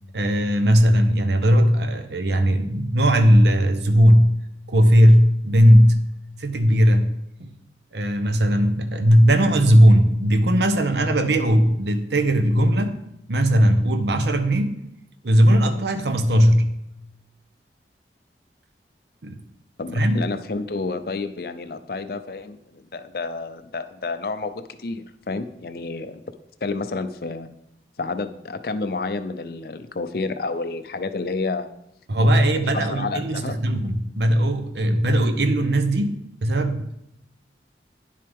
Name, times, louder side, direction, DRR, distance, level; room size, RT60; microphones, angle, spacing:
voice 1, 0.1-4.4 4.7-6.1 6.4-7.5 7.9-13.0 13.3-14.8 15.2-16.7 19.2-19.4 19.9-20.2 32.1-37.0, equal, 75° right, 9 dB, 0.8 m, -18 dB
voice 2, 19.8-26.2 26.6-27.5 28.0-31.7 32.2-33.6, left 3 dB, 55° left, 10 dB, 0.5 m, -30 dB
10.5 x 7.6 x 3.5 m, 0.79 s
head